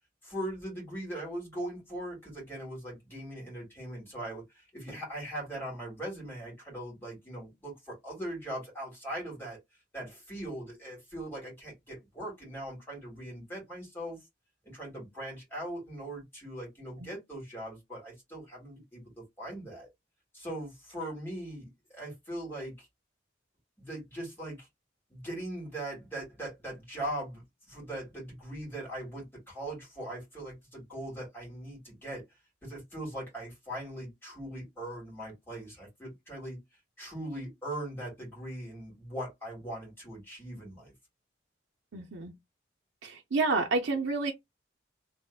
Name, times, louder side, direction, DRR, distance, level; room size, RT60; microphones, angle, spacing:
voice 1, 0.2-9.6 9.9-14.2 14.6-19.9 20.3-22.9 23.8-24.7 25.1-27.4 27.7-32.2 32.6-36.6 37.0-40.9, right 1 dB, 10° left, 2.6 m, -40 dB
voice 2, 41.9-42.3 43.0-44.3, right 3 dB, 90° right, 0.6 m, -29 dB
3.5 x 3.4 x 2.3 m
head